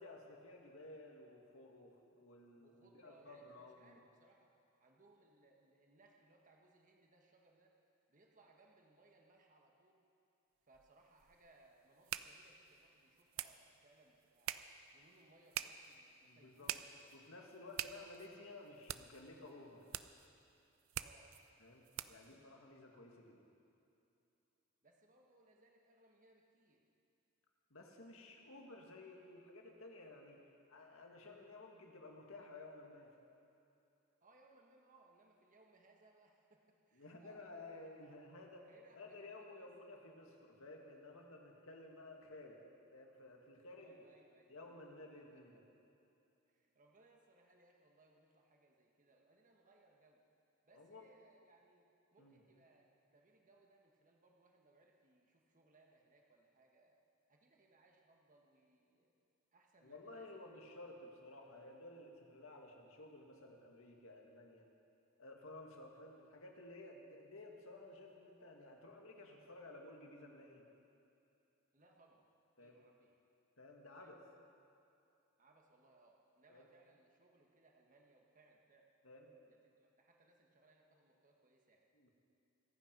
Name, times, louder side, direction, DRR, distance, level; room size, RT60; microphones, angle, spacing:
voice 1, 0.0-4.0 16.2-16.7 17.1-19.8 21.6-21.8 22.1-23.4 27.7-30.4 30.7-33.1 36.9-38.7 39.0-42.6 42.9-44.0 44.5-45.6 50.7-51.0 52.2-52.4 59.8-64.7 65.2-70.6 72.6-72.9 73.6-74.2 76.5-76.7 79.0-79.3 81.9-82.1, left 2 dB, 90° left, 1 dB, 2.0 m, -55 dB
voice 2, 2.6-4.5 4.8-7.7 8.1-10.0 10.6-14.6 14.9-17.1 17.4-17.7 21.0-21.4 24.8-26.9 34.2-38.2 38.7-40.1 43.8-44.5 45.1-45.6 46.5-50.2 50.6-57.0 57.3-59.1 59.5-60.2 60.6-60.7 71.7-72.3 72.6-73.2 73.9-74.2 75.4-78.9 79.5-81.8, right 2 dB, 40° right, 1 dB, 1.4 m, -69 dB
sound 1, 10.7-22.3, right 11 dB, 80° right, 0.5 m, -48 dB
25.0 x 9.1 x 5.3 m, 2.8 s
head